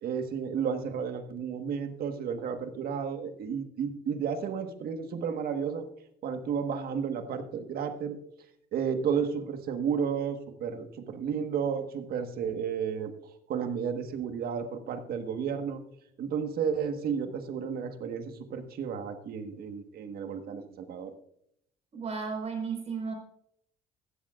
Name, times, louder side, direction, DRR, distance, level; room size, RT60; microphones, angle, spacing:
voice 1, 0.0-5.9 6.2-8.2 8.7-13.1 13.5-15.8 16.2-21.1, right 7 dB, 65° right, 7 dB, 1.5 m, -32 dB
voice 2, 21.9-23.1, right 5 dB, 40° right, 2 dB, 4.7 m, -34 dB
15.5 x 12.0 x 2.5 m, 0.74 s
cardioid pair, 110°, 17 cm